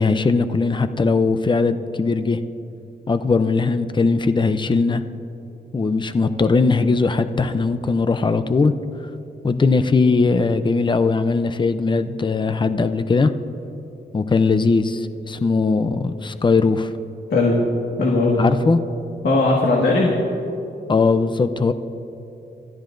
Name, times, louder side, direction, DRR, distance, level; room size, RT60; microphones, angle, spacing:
voice 1, 0.0-2.4 3.1-5.0 5.7-8.7 9.4-13.3 14.1-16.9 18.4-18.8 20.9-21.7, left 4 dB, 25° left, 11 dB, 0.5 m, -19 dB
voice 2, 18.0-18.5 19.2-20.1, left 2 dB, 75° left, -2 dB, 1.7 m, -18 dB
27.0 x 13.5 x 2.6 m, 2.9 s
wide cardioid pair, 125°, 18 cm